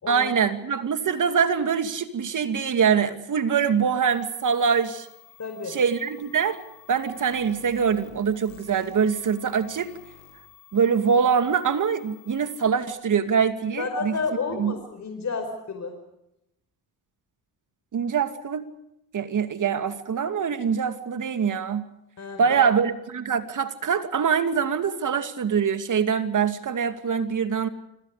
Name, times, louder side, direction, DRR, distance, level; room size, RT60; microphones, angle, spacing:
voice 1, 0.1-5.1 5.7-6.6 6.9-9.9 10.7-14.1 14.6-14.7 17.9-18.6 19.1-21.9 22.4-27.7, right 6 dB, 50° right, 9 dB, 2.5 m, -24 dB
sound 1, 4.1-12.7, left 8 dB, 85° left, 6.0 m, -52 dB
voice 2, 5.4-5.8 13.8-16.0 22.2-22.6, left 4 dB, 45° left, 6 dB, 5.1 m, -31 dB
27.0 x 26.5 x 5.1 m, 0.84 s
hypercardioid pair, 55°, 40 cm